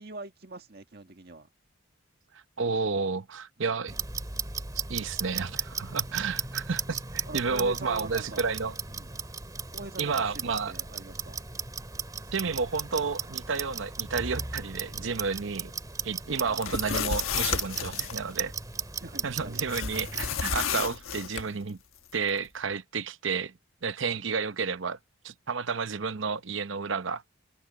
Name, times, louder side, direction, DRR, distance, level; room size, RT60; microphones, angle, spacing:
voice 1, 0.0-1.5 3.6-3.9 6.1-6.3 7.3-8.5 8.9-9.1 9.7-11.4 16.4-16.7 19.0-20.1, right 2 dB, 50° right, 1.9 m, -44 dB
voice 2, 2.6-4.0 4.9-8.8 10.0-10.7 12.3-15.7 16.0-18.5 19.2-21.8 22.1-23.5 23.8-25.0 25.2-27.2, right 5 dB, 65° right, 0.8 m, -31 dB
Clock, 3.9-20.4, right 6 dB, 20° right, 2.1 m, -36 dB
sound 1, 16.5-18.2 19.7-21.4, left 7 dB, 85° left, 1.3 m, -31 dB
head